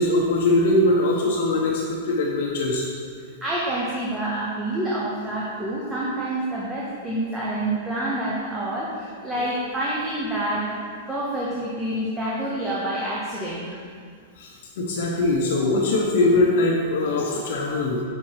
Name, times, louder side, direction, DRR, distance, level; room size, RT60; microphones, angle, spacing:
voice 1, 0.0-2.9 9.3-9.4 14.4-18.0, left 2 dB, 55° left, -2 dB, 0.7 m, -22 dB
voice 2, 3.4-10.8 11.1-13.8, right 1 dB, 10° right, -6 dB, 0.6 m, -27 dB
5.2 x 4.6 x 4.4 m, 2.1 s
supercardioid pair, 165°, 0 cm